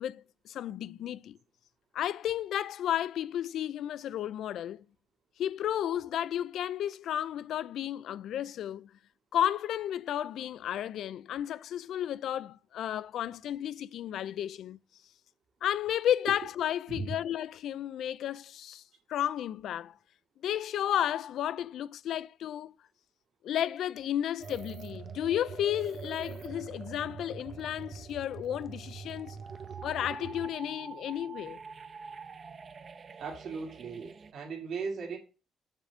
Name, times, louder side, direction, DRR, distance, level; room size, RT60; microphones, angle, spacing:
voice 1, 0.0-1.4 1.9-4.8 5.4-8.9 9.3-14.8 15.6-18.8 19.1-20.0 20.4-22.8 23.4-29.4 29.8-31.6, left 11 dB, 75° left, 0.3 m, -33 dB
sound 1, 24.4-34.3, right 6 dB, 45° right, 0.6 m, -44 dB
voice 2, 33.2-35.2, right 5 dB, 70° right, 1.9 m, -37 dB
7.3 x 3.3 x 5.0 m
cardioid pair, 90°, 0 cm